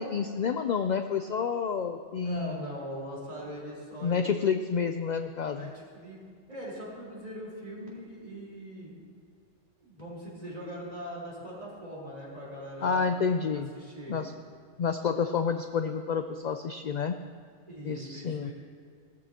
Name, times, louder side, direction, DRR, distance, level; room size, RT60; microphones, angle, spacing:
voice 1, 0.0-2.6 4.0-5.7 12.8-13.7 14.1-14.3 14.8-17.2 17.8-18.5, left 6 dB, 60° left, 8 dB, 0.4 m, -29 dB
voice 2, 2.1-4.5 5.5-6.2 6.5-9.0 9.8-13.2 13.7-14.2 17.7-18.5, equal, 30° right, -6 dB, 4.2 m, -41 dB
18.0 x 13.5 x 2.9 m, 2.1 s
omnidirectional pair, 1.3 m